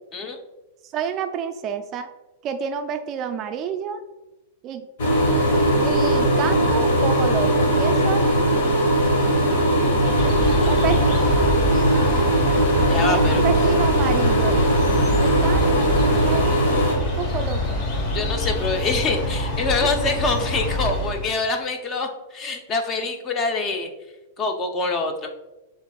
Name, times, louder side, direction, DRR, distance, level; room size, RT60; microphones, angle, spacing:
voice 1, 0.8-2.1 2.4-4.0 4.6-4.9 5.8-8.3 10.7-11.0 11.9-12.3 13.1-14.7 15.2-15.9 16.2-16.4 17.0-17.9 19.8-19.9, right 7 dB, 30° right, 7 dB, 0.3 m, -29 dB
sound 1, 5.0-16.9, right 1 dB, 70° left, 1.1 m, -19 dB
voice 2, 9.8-10.8 12.9-13.4 18.1-23.9 24.4-25.3, left 3 dB, 25° left, 5 dB, 0.6 m, -26 dB
sound 2, 9.9-21.3, left 1 dB, 45° left, 1.1 m, -26 dB
6.4 x 3.4 x 2.3 m, 1.0 s
supercardioid pair, 145°, 0 cm